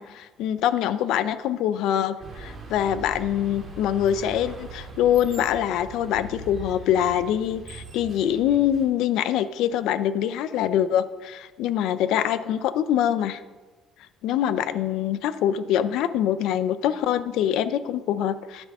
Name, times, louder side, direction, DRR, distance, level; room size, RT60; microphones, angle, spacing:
voice 1, 0.0-13.4 14.2-18.7, left 10 dB, 70° left, 14 dB, 0.4 m, -24 dB
sound 1, 2.2-8.9, right 3 dB, 25° right, 2.3 m, -41 dB
9.9 x 7.0 x 5.3 m, 1.3 s
cardioid pair, 180°, 0 cm